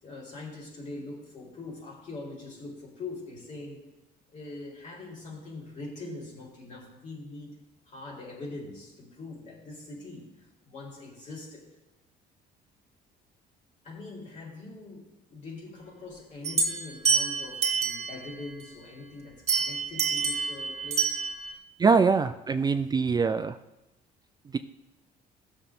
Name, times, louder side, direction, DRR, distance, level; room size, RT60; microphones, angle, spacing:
voice 1, 0.0-3.8 4.3-7.6 7.9-11.7 13.8-21.3, left 2 dB, 45° left, -2 dB, 4.0 m, -42 dB
sound 1, 16.4-18.3 19.5-21.5, right 5 dB, 40° right, 1.9 m, -27 dB
voice 2, 21.8-23.6 24.5-24.6, right 5 dB, 25° right, 9 dB, 0.4 m, -23 dB
16.0 x 6.9 x 3.7 m, 0.97 s
cardioid pair, 110°, 17 cm